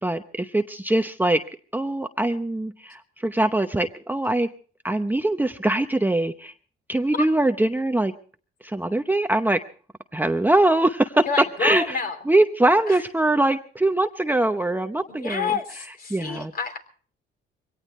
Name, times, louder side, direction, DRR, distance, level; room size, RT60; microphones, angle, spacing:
voice 1, 0.0-1.4 1.7-4.5 4.8-6.5 6.9-8.1 8.6-9.6 10.1-11.3 11.6-12.0 12.3-15.5 16.1-16.5, right 1 dB, 10° right, 7 dB, 0.8 m, -22 dB
voice 2, 11.3-12.2 12.9-13.0 15.1-16.8, left 5 dB, 50° left, 6 dB, 3.4 m, -29 dB
23.0 x 17.5 x 3.2 m, 0.42 s
cardioid pair, 90°, 20 cm